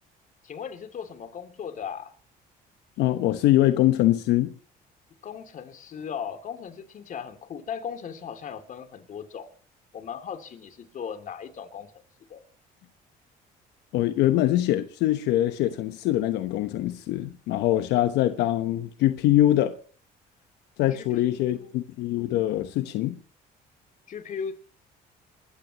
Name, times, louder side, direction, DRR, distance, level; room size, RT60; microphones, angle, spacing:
voice 1, 0.4-2.1 5.2-9.5 9.9-11.9 12.3-12.4 20.9-21.7 24.1-24.5, left 7 dB, 50° left, 2.8 m, -37 dB
voice 2, 3.0-4.5 13.9-19.8 20.8-23.2, left 14 dB, 90° left, 1.1 m, -23 dB
28.0 x 14.5 x 3.0 m
cardioid pair, 110°, 17 cm